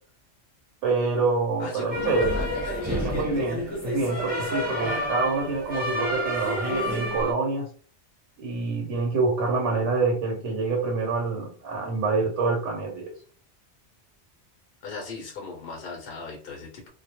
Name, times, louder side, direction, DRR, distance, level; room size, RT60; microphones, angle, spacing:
voice 1, 0.8-2.3 3.0-7.7 8.4-13.1, right 3 dB, 85° right, 0 dB, 1.0 m, -26 dB
voice 2, 1.6-2.5 2.8-3.1 14.8-16.9, left 4 dB, 60° left, 0 dB, 0.7 m, -38 dB
sound 1, 1.9-7.3, equal, 10° right, 1.2 m, -29 dB
2.2 x 2.1 x 2.8 m, 0.43 s
omnidirectional pair, 1.2 m